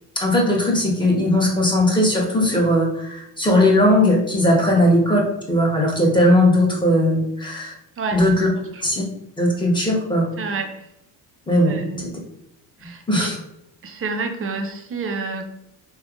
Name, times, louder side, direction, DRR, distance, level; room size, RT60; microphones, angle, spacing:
voice 1, 0.2-5.2 5.5-7.7 8.1-8.5 8.8-9.0 9.4-10.3 11.5-12.1 13.1-13.4, left 1 dB, 10° left, -2 dB, 1.0 m, -18 dB
voice 2, 10.4-10.9 11.7-12.1 12.8-13.3 13.8-15.4, right 4 dB, 30° right, 5 dB, 0.5 m, -29 dB
3.3 x 2.1 x 2.4 m, 0.80 s
supercardioid pair, 75°, 46 cm